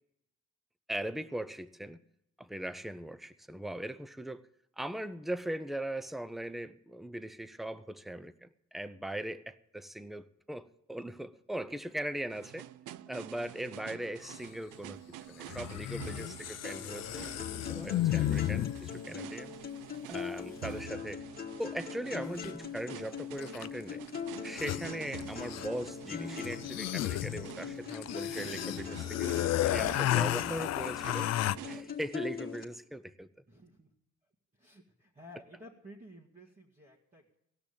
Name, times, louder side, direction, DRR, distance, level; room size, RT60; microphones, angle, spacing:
voice 1, 0.9-2.0 2.4-4.4 4.8-12.7 13.1-17.3 17.7-19.5 20.1-21.2 21.6-24.0 24.4-29.3 29.6-31.3 31.6-33.3, right 1 dB, ahead, 0.7 m, -39 dB
sound 1, 12.3-31.8, right 13 dB, 85° right, 0.5 m, -48 dB
sound 2, 14.2-14.4 15.5-19.0 22.4-22.5 23.4-23.8 24.1-24.2 24.4-25.9 26.4-31.6, left 14 dB, 60° left, 0.4 m, -33 dB
sound 3, 16.6-32.6, left 7 dB, 30° left, 1.8 m, -41 dB
voice 2, 33.5-33.9 34.5-37.4, equal, 25° right, 2.2 m, -54 dB
17.5 x 6.1 x 8.7 m
cardioid pair, 90°, 30 cm